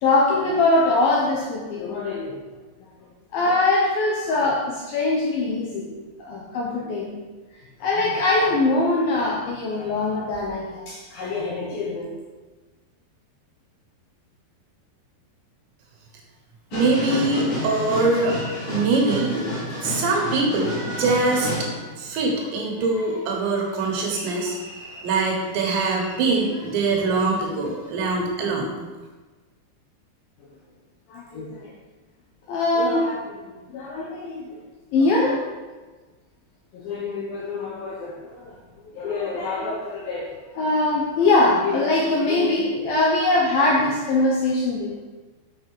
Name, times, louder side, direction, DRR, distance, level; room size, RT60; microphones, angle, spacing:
voice 1, 0.0-2.4 3.3-7.2 7.5-12.1 31.1-31.7 32.5-34.5 34.9-35.5 36.7-38.6 38.9-45.0, left 2 dB, 75° left, -2 dB, 2.2 m, -23 dB
sound 1, 16.7-21.9 22.3-27.4 27.6-27.7, left 1 dB, 50° left, 3.1 m, -32 dB
voice 2, 16.7-18.4 18.7-19.5 19.8-21.5 22.0-24.6 25.0-28.7, right 3 dB, 80° right, 0 dB, 3.5 m, -23 dB
7.8 x 5.7 x 6.3 m, 1.3 s
omnidirectional pair, 5.2 m